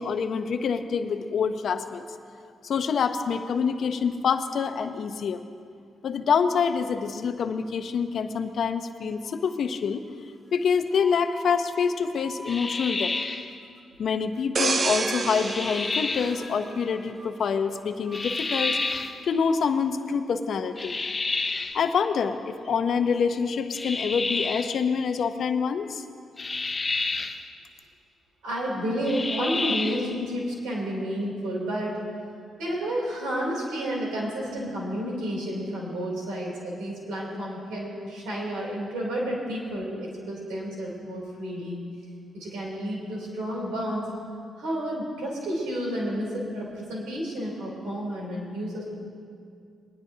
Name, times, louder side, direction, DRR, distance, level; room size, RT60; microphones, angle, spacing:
voice 1, 0.0-2.0 2.6-5.5 6.0-10.0 10.5-13.2 14.0-18.8 19.3-21.0 21.7-26.0, left 6 dB, 65° left, 9 dB, 0.7 m, -26 dB
sound 1, 8.3-8.9 9.2-9.7 10.5-13.8 14.1-14.4 14.9-15.2 15.4-15.5 15.8-15.9 16.1-19.2, equal, 25° right, 1.8 m, -46 dB
sound 2, 12.5-13.5 15.4-16.4 18.1-19.2 20.8-21.8 23.7-24.8 26.4-27.4 29.0-30.1, left 3 dB, 25° left, 0.7 m, -29 dB
sound 3, 14.6-17.2 17.7-17.9, right 4 dB, 45° right, 0.5 m, -29 dB
voice 2, 28.4-32.0 32.6-41.8 42.3-44.1 44.6-48.9, equal, 90° right, -3 dB, 3.1 m, -31 dB
21.0 x 10.5 x 2.8 m, 2.3 s
cardioid pair, 65°, 0 cm